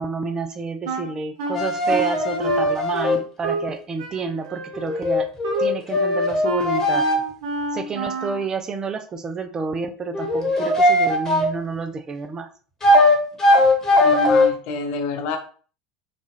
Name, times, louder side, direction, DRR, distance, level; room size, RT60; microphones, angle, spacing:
voice 1, 0.0-5.3 5.6-7.1 7.7-12.5, right 4 dB, 25° right, 8 dB, 0.4 m, -29 dB
Wind instrument woodwind instrument, 0.8-3.7 4.0-8.5, right 1 dB, 70° right, 0.8 m, -29 dB
sound 1, 1.5-3.2 4.7-7.2 10.1-11.5 12.8-14.5, left 1 dB, 20° left, 1.2 m, -19 dB
voice 2, 14.0-15.4, left 2 dB, 55° left, 6 dB, 0.6 m, -27 dB
3.9 x 2.4 x 2.9 m, 0.41 s
figure-of-eight pair, 75°, 3 cm